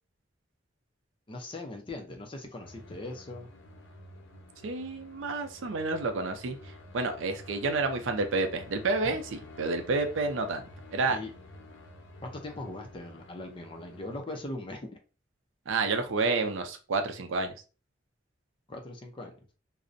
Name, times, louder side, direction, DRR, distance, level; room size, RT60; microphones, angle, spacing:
voice 1, 1.3-3.5 11.1-11.3 12.2-15.0 18.7-19.3, left 2 dB, 25° left, 0.4 m, -40 dB
sound 1, 2.6-14.2, left 2 dB, 80° left, 0.5 m, -50 dB
voice 2, 4.6-6.6 6.9-10.6 10.9-11.2 15.7-17.5, right 3 dB, 90° right, 0.5 m, -29 dB
2.5 x 2.0 x 2.5 m
head